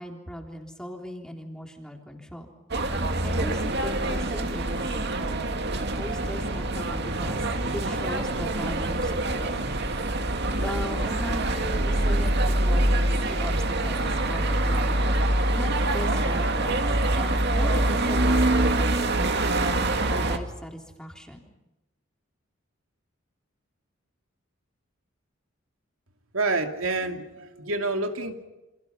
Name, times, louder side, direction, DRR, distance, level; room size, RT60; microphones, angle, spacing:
voice 1, 0.0-2.5 3.2-4.8 5.9-7.5 7.7-9.6 10.6-13.0 13.2-15.0 15.5-19.7 20.1-21.4, equal, 5° left, 2 dB, 3.6 m, -38 dB
sound 1, 2.7-20.4, right 1 dB, 55° right, 2.2 m, -25 dB
voice 2, 26.3-28.4, right 3 dB, 80° right, 5 dB, 2.6 m, -28 dB
29.0 x 27.0 x 5.8 m, 1.0 s
head